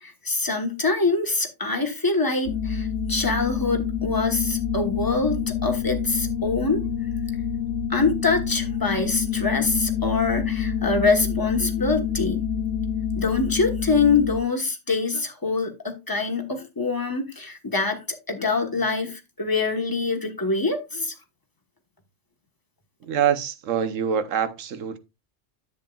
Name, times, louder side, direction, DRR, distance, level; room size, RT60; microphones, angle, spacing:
voice 1, 0.0-6.8 7.9-12.4 13.2-18.0 18.3-21.1, left 3 dB, 15° left, 1.2 m, -24 dB
sound 1, 2.5-14.4, left 8 dB, 80° left, 1.1 m, -27 dB
voice 2, 23.0-25.0, right 8 dB, 85° right, 1.2 m, -25 dB
10.0 x 8.0 x 2.4 m
omnidirectional pair, 1.3 m